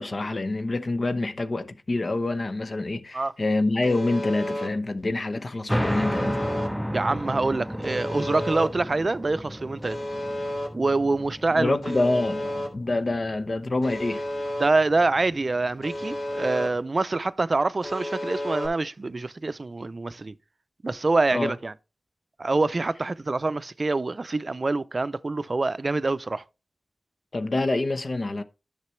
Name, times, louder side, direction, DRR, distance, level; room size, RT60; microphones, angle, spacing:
voice 1, 0.0-6.4 11.5-14.2 21.3-21.5 27.3-28.4, left 2 dB, 55° left, 0.8 m, -26 dB
Alarm, 3.8-4.7 5.8-6.7 7.8-8.7 9.8-10.7 11.8-12.7 13.8-14.7 15.8-16.7 17.8-18.7, left 1 dB, 70° left, 2.5 m, -31 dB
sound 1, 5.7-16.8, equal, ahead, 0.5 m, -34 dB
voice 2, 6.9-10.0 10.7-12.0 14.6-20.3 20.8-21.7 22.4-26.4, right 3 dB, 50° right, 0.4 m, -25 dB
10.5 x 6.7 x 3.2 m
cardioid pair, 45°, 0 cm